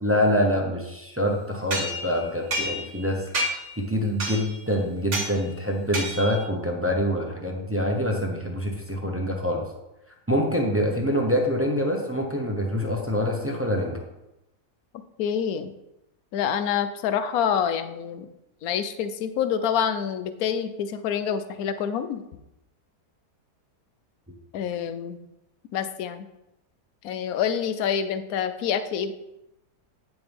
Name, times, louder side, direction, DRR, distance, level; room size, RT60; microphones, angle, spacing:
voice 1, 0.0-3.2 3.8-9.6 10.3-14.0, equal, 10° right, 1 dB, 0.8 m, -25 dB
sound 1, 1.7-3.0 3.3-3.8 4.2-4.6 5.1-5.3 5.9-6.4, equal, 80° right, 2.3 m, -29 dB
voice 2, 15.2-15.7 16.3-18.3 18.6-22.2 24.5-25.2 25.7-26.3 27.0-29.1, left 8 dB, 70° left, 11 dB, 1.1 m, -27 dB
9.2 x 6.8 x 3.6 m, 0.90 s
omnidirectional pair, 1.7 m